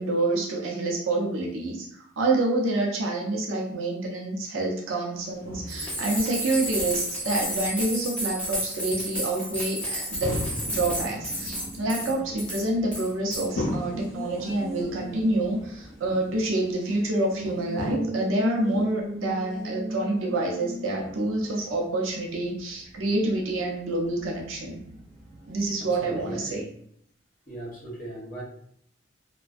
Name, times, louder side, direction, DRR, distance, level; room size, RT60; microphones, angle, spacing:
voice 1, 0.0-10.4 10.7-24.8 25.5-26.6, right 2 dB, 90° right, -1 dB, 0.5 m, -27 dB
sound 1, 5.2-18.0, left 1 dB, 75° left, 0.5 m, -38 dB
sound 2, 5.7-12.1 12.4-12.6 12.9-13.4, equal, 5° left, 0.7 m, -32 dB
Race car auto racing, 10.4-26.6, right 1 dB, 30° right, 0.5 m, -39 dB
voice 2, 25.8-26.7 27.5-28.4, right 2 dB, 45° left, -5 dB, 0.8 m, -39 dB
2.5 x 2.2 x 2.4 m, 0.68 s
head